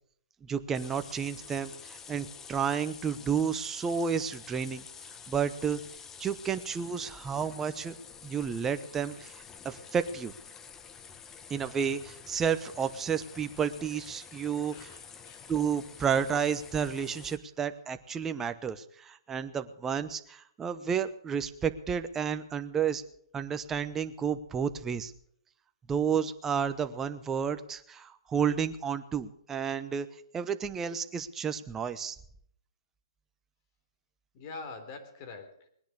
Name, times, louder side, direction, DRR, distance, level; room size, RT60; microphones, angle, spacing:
voice 1, 0.4-4.8 5.3-5.8 6.2-7.9 8.2-10.3 11.5-15.0 15.5-23.0 23.3-25.1 25.9-30.1 30.3-32.2, right 7 dB, 15° right, 10 dB, 1.0 m, -31 dB
sound 1, 0.7-17.4, left 6 dB, 15° left, 0.9 m, -49 dB
voice 2, 14.7-15.5 34.3-35.7, left 4 dB, 35° left, 7 dB, 3.4 m, -45 dB
20.5 x 10.5 x 6.5 m, 0.64 s
hypercardioid pair, 145°, 3 cm